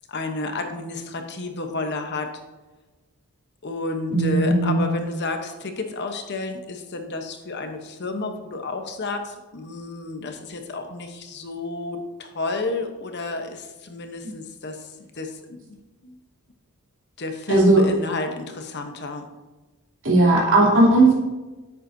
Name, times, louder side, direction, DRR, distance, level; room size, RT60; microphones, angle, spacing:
voice 1, 0.1-2.3 3.6-16.2 17.2-19.3, left 3 dB, 50° left, 5 dB, 0.9 m, -31 dB
voice 2, 4.1-4.8 17.5-17.8 20.0-21.1, right 2 dB, 60° right, -5 dB, 3.1 m, -16 dB
10.5 x 8.0 x 2.7 m, 1.2 s
head